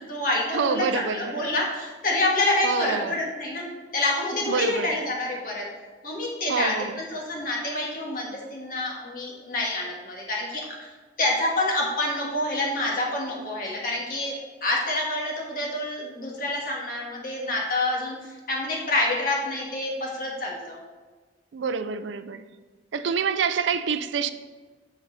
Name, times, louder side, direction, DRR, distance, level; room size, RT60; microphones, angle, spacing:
voice 1, 0.0-3.6 3.9-5.6 6.0-10.9 11.2-20.8, left 2 dB, 50° left, 1.6 m, -27 dB
voice 2, 0.5-1.5 2.6-3.2 4.5-4.9 6.5-6.9 21.5-22.4 22.9-24.3, right 6 dB, 80° right, 0.4 m, -27 dB
10.0 x 4.0 x 4.0 m
head